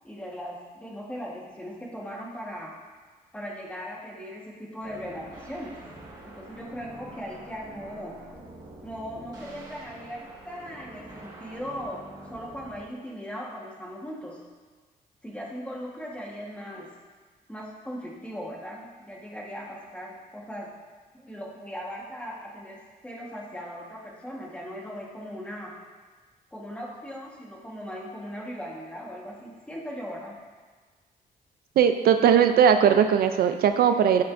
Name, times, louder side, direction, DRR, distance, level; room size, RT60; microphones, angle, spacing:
voice 1, 0.0-2.7 3.3-5.7 6.2-8.1 8.8-12.0 12.2-14.4 15.2-16.9 17.5-20.7 21.1-25.7 26.5-30.4, equal, 5° left, -3 dB, 1.3 m, -38 dB
sound 1, 4.8-12.8, right 1 dB, 25° right, 1.6 m, -46 dB
voice 2, 31.8-34.2, right 8 dB, 70° right, 8 dB, 0.4 m, -19 dB
12.5 x 5.9 x 2.5 m, 1.5 s
cardioid pair, 150°, 16 cm